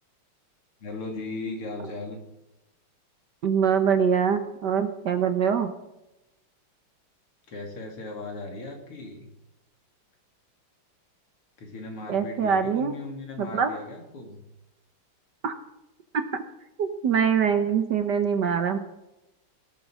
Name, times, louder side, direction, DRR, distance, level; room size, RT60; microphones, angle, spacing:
voice 1, 0.8-2.2 7.5-9.3 11.6-14.4, left 2 dB, 85° left, 3 dB, 3.7 m, -37 dB
voice 2, 3.4-5.7 12.1-12.9 13.4-13.7 15.4-15.5 16.1-16.2 16.8-18.8, right 7 dB, 60° right, 8 dB, 1.4 m, -23 dB
18.5 x 8.4 x 6.2 m, 0.92 s
omnidirectional pair, 2.4 m